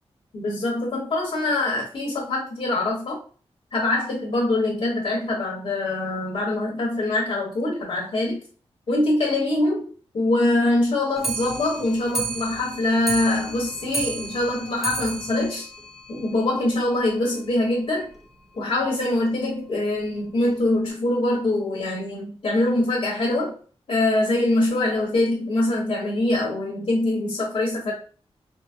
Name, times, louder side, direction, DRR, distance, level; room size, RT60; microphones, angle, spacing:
voice 1, 0.3-3.2 3.7-8.4 8.9-9.9 10.1-15.7 16.1-18.1 18.5-23.5 23.9-27.9, left 2 dB, 65° left, -3 dB, 1.0 m, -23 dB
Clock, 11.2-16.7 17.0-17.1 17.4-17.5 17.8-17.9 18.1-18.2 18.9-19.0 19.7-19.8 20.5-20.6, right 3 dB, 5° right, 0.5 m, -32 dB
4.5 x 2.0 x 2.5 m, 0.41 s
wide cardioid pair, 135°, 11 cm